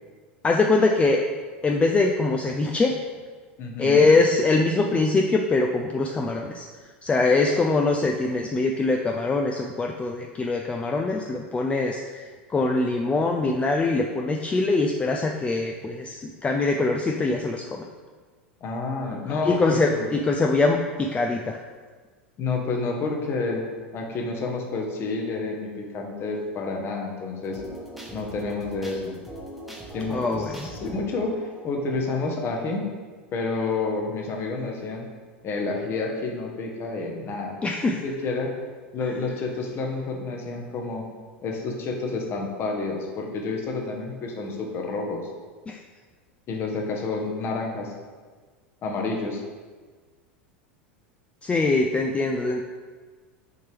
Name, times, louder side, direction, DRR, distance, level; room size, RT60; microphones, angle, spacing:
voice 1, 0.4-1.2 1.6-3.0 3.8-6.6 7.0-17.8 19.3-21.6 30.1-30.7 37.6-38.0 45.7-45.8 51.4-52.6, left 3 dB, 20° left, 2 dB, 0.4 m, -23 dB
voice 2, 3.6-4.1 18.6-20.2 22.4-23.7 23.9-27.6 28.1-29.2 29.9-32.9 33.3-35.1 35.4-37.6 38.0-38.5 38.9-41.1 41.4-45.3 46.5-47.9 48.8-49.4, left 3 dB, 40° left, 1 dB, 1.2 m, -29 dB
sound 1, 27.4-32.9, right 1 dB, ahead, 1.2 m, -42 dB
6.4 x 4.3 x 3.4 m, 1.5 s
hypercardioid pair, 85°, 6 cm